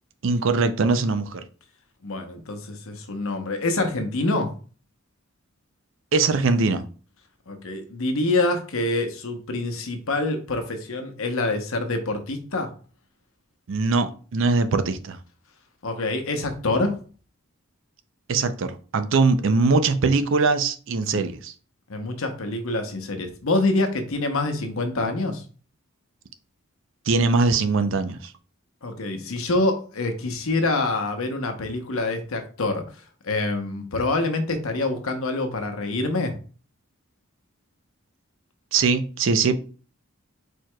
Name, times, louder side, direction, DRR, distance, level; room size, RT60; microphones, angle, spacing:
voice 1, 0.2-1.4 6.1-6.8 13.7-15.2 18.3-21.5 27.1-28.3 38.7-39.6, right 4 dB, 60° right, 0.4 m, -21 dB
voice 2, 2.0-4.5 7.5-12.7 15.8-17.0 21.1-21.2 21.9-25.4 28.8-32.8 33.2-36.3, left 2 dB, 75° left, 0.8 m, -26 dB
4.6 x 4.4 x 2.2 m
head